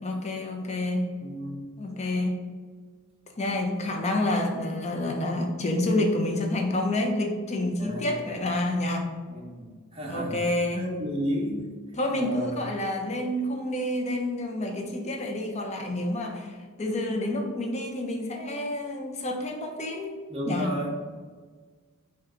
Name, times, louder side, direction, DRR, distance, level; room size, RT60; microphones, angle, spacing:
voice 1, 0.0-1.2 1.8-2.4 3.4-9.1 10.1-10.9 12.0-20.2 20.5-20.7, left 1 dB, 35° left, 2 dB, 0.6 m, -28 dB
voice 2, 1.2-1.6 7.8-8.2 9.3-10.4 10.7-11.6 12.1-12.6 20.3-21.0, equal, 25° right, -2 dB, 0.8 m, -32 dB
5.8 x 2.3 x 3.7 m, 1.5 s
head